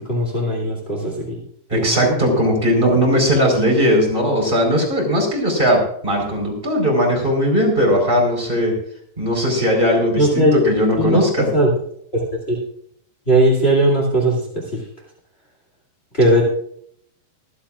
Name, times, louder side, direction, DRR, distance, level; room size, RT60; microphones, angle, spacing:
voice 1, 0.0-1.4 1.7-2.2 10.1-10.6 11.0-11.7 12.1-12.6 13.3-14.6 16.1-16.4, right 1 dB, 75° left, -2 dB, 0.5 m, -18 dB
voice 2, 1.7-8.7 9.2-11.5, equal, 10° right, 0 dB, 3.6 m, -18 dB
24.5 x 11.5 x 2.4 m, 0.66 s
omnidirectional pair, 5.4 m